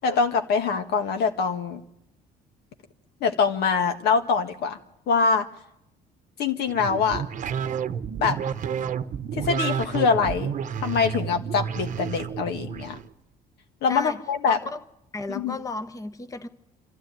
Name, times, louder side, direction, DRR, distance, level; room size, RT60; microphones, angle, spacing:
voice 1, 0.0-1.8 3.2-4.8 5.1-5.5 6.4-7.2 8.2-8.4 9.4-10.5 10.8-13.0 13.8-14.6 15.3-15.6, left 5 dB, 75° left, 6 dB, 1.8 m, -24 dB
sound 1, 6.7-13.0, right 7 dB, 50° right, 0.9 m, -30 dB
voice 2, 13.9-14.2 14.5-14.8 15.1-16.5, left 3 dB, 20° left, 10 dB, 1.0 m, -34 dB
27.5 x 13.0 x 9.2 m, 0.86 s
cardioid pair, 110°, 17 cm